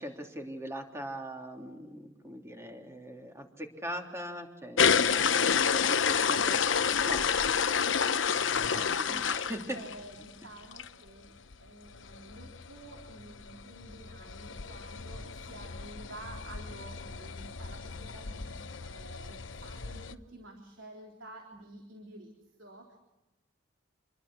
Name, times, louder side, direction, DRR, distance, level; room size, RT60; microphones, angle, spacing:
voice 1, 0.0-7.6 8.3-8.5 8.7-9.6, equal, 15° right, 3 dB, 3.3 m, -42 dB
sound 1, 4.8-10.2 10.6-10.9 11.2-11.3 11.5-11.6 11.9-20.1, left 6 dB, 80° left, 0.9 m, -30 dB
voice 2, 6.2-6.5 8.0-23.0, right 1 dB, 90° right, 1 dB, 3.8 m, -50 dB
28.0 x 22.0 x 6.3 m, 1.1 s
head